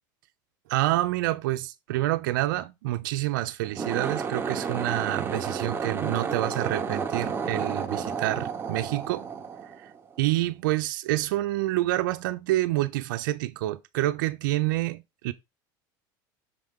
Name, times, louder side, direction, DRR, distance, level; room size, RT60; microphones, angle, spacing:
voice 1, 0.7-9.3 10.2-15.3, right 16 dB, 85° right, 0.7 m, -27 dB
sound 1, 3.6-10.2, right 5 dB, 20° right, 1.2 m, -31 dB
6.5 x 5.1 x 3.7 m
supercardioid pair, 120°, 11 cm